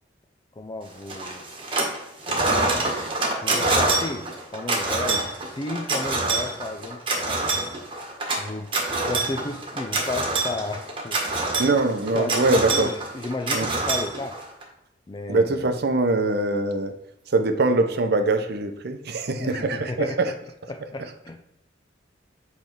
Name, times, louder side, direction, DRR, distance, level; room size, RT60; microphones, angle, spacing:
voice 1, 0.5-1.5 2.3-2.8 3.4-7.8 8.4-11.2 12.1-14.4 15.1-15.7 19.4-20.4 20.7-21.5, left 2 dB, 25° left, 5 dB, 0.4 m, -33 dB
sound 1, 1.1-2.0 2.2-14.6, right 2 dB, 30° right, 1.3 m, -26 dB
voice 2, 11.6-12.9 13.5-13.7 15.3-16.9 17.3-20.3, right 2 dB, 60° right, 7 dB, 0.7 m, -23 dB
7.8 x 3.3 x 4.5 m, 0.88 s
head